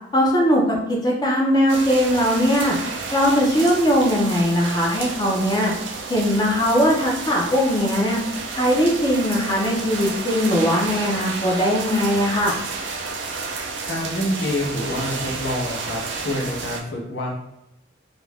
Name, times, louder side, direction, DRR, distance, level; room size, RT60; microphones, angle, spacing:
voice 1, 0.1-2.8 3.1-5.7 6.1-8.2 8.5-12.5, equal, 20° left, -3 dB, 0.5 m, -20 dB
sound 1, 1.7-16.8, right 4 dB, 70° right, 0.4 m, -31 dB
voice 2, 13.9-17.4, left 1 dB, 70° left, -1 dB, 0.7 m, -27 dB
2.5 x 2.2 x 3.3 m, 0.86 s
head